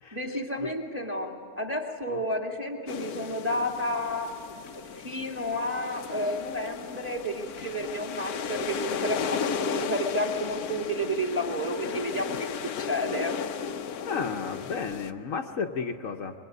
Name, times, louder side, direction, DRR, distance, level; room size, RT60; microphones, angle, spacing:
voice 1, 0.1-4.3 4.7-12.5 12.8-13.4, equal, 10° right, 2 dB, 2.5 m, -31 dB
sound 1, 2.9-15.1, left 7 dB, 80° left, 1.3 m, -35 dB
voice 2, 14.0-16.3, left 5 dB, 65° left, 4 dB, 1.3 m, -33 dB
25.0 x 22.5 x 9.6 m, 2.3 s
omnidirectional pair, 1.5 m